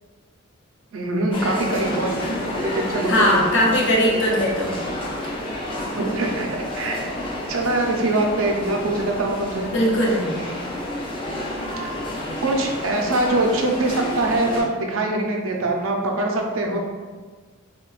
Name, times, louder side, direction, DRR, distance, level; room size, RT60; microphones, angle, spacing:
voice 1, 0.9-2.2 2.6-3.7 6.0-7.1 7.5-9.7 12.4-16.8, right 2 dB, 75° right, 1 dB, 0.5 m, -23 dB
sound 1, 1.3-14.6, left 1 dB, 25° left, 0.4 m, -30 dB
voice 2, 3.1-4.8 9.7-10.3, equal, 60° left, -3 dB, 0.7 m, -19 dB
3.7 x 2.1 x 2.3 m, 1.4 s
head